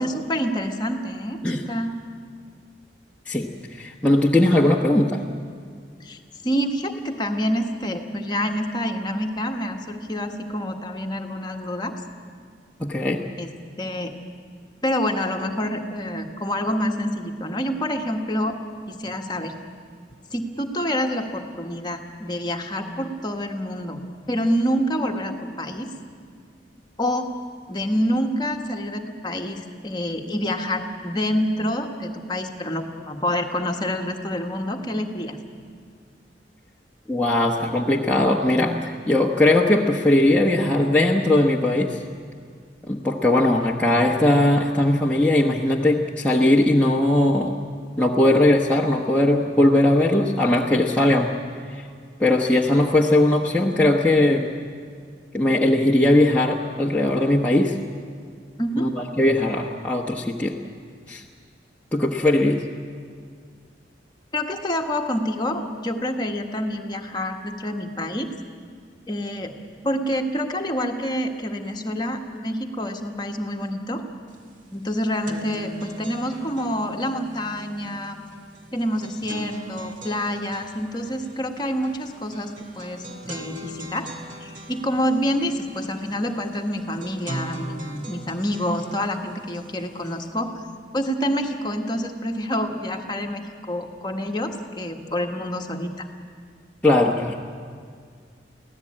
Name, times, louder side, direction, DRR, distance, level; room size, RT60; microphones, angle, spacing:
voice 1, 0.0-1.9 6.0-11.9 13.4-13.5 13.8-14.1 14.8-18.6 18.9-19.6 20.3-24.0 24.3-25.9 27.0-27.3 27.7-35.4 58.6-58.9 64.3-68.3 69.1-69.5 69.8-74.0 74.7-78.2 78.7-84.1 84.4-90.6 90.9-96.1, equal, 25° left, 3 dB, 1.5 m, -27 dB
voice 2, 3.3-5.2 12.8-13.2 37.1-42.0 42.9-47.5 48.0-51.3 52.2-54.5 55.3-57.7 58.8-60.6 61.1-61.2 61.9-62.6 96.8-97.3, left 1 dB, 10° left, -3 dB, 1.1 m, -19 dB
sound 1, 74.3-74.4 74.7-90.3, equal, 45° right, 2.1 m, -40 dB
24.5 x 16.5 x 8.7 m, 2.1 s
head